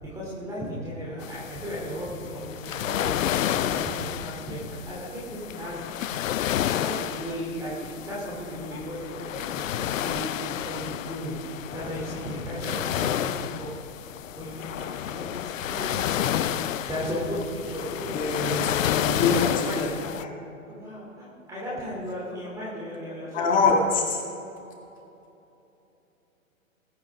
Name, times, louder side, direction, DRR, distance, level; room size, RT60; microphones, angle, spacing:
voice 1, 0.0-3.1 3.5-5.8 6.8-11.4 11.7-13.7 14.4-16.6 16.9-18.8 19.3-19.8 20.7-23.7, equal, 10° right, -8 dB, 2.9 m, -35 dB
sound 1, 1.2-20.2, left 11 dB, 65° left, 0.6 m, -30 dB
voice 2, 18.1-19.9 20.2-20.3 23.3-24.2, left 4 dB, 20° left, 0 dB, 2.0 m, -25 dB
20.5 x 8.5 x 3.6 m, 2.9 s
hypercardioid pair, 135°, 42 cm